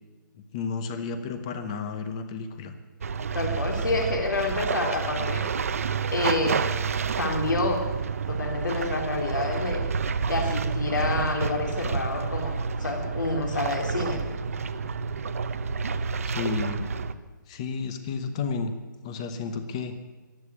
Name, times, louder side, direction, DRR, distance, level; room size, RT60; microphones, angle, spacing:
voice 1, 0.5-2.7 16.2-16.8 17.5-18.7 19.0-20.0, left 5 dB, 15° left, 9 dB, 0.8 m, -32 dB
sound 1, 3.0-17.1, right 5 dB, 45° right, 0.7 m, -29 dB
voice 2, 3.3-5.4 6.1-6.6 7.2-7.8 8.3-9.8 10.3-12.5 12.8-14.2, left 3 dB, 65° left, 1 dB, 3.3 m, -28 dB
14.0 x 12.0 x 8.4 m, 1.3 s
hypercardioid pair, 175°, 11 cm